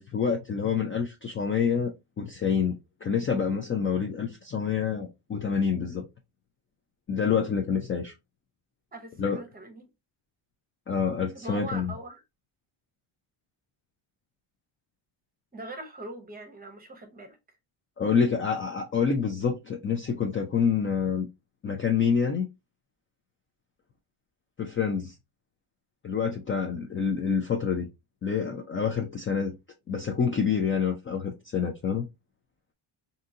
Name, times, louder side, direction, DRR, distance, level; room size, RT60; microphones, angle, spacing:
voice 1, 0.0-1.9 2.2-6.0 7.1-8.1 9.2-9.4 10.9-11.9 18.0-21.3 21.6-22.5 24.6-25.1 26.0-27.9 28.2-29.5 29.9-32.1, left 6 dB, 30° left, 0.3 m, -27 dB
voice 2, 8.9-9.9 11.3-12.2 15.5-17.4, right 1 dB, 20° right, 0.7 m, -41 dB
3.7 x 2.7 x 2.6 m
cardioid pair, 170°, 49 cm